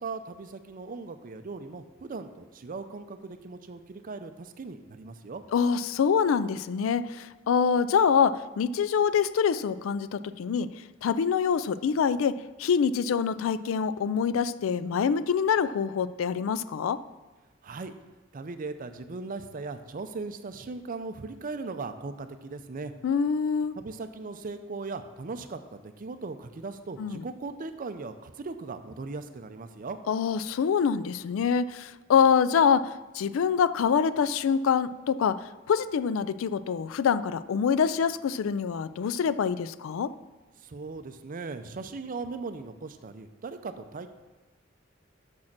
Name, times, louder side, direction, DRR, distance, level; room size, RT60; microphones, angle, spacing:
voice 1, 0.0-5.4 17.6-17.9 18.3-22.9 23.8-30.0 40.6-44.1, right 3 dB, 45° right, 9 dB, 0.5 m, -38 dB
voice 2, 5.5-10.7 11.0-17.0 23.0-23.8 27.0-27.2 30.1-40.1, left 6 dB, 90° left, 15 dB, 0.3 m, -25 dB
6.4 x 6.2 x 5.9 m, 1.2 s
head